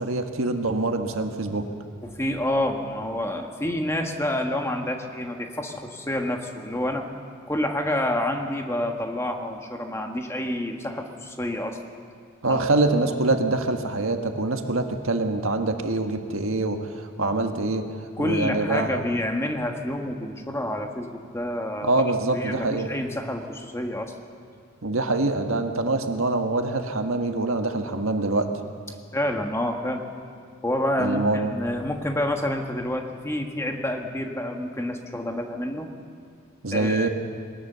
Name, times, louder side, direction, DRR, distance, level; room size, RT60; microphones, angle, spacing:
voice 1, 0.0-1.7 12.4-17.8 18.2-18.9 21.8-22.9 24.8-28.5 31.0-31.5 36.6-37.1, right 2 dB, 80° right, 5 dB, 1.5 m, -25 dB
voice 2, 2.0-7.1 7.5-11.8 12.5-12.6 18.2-22.0 22.3-24.2 29.1-30.0 30.6-31.2 31.5-35.9 36.7-37.1, left 1 dB, 15° left, 3 dB, 1.5 m, -28 dB
21.0 x 19.0 x 6.9 m, 2.2 s
head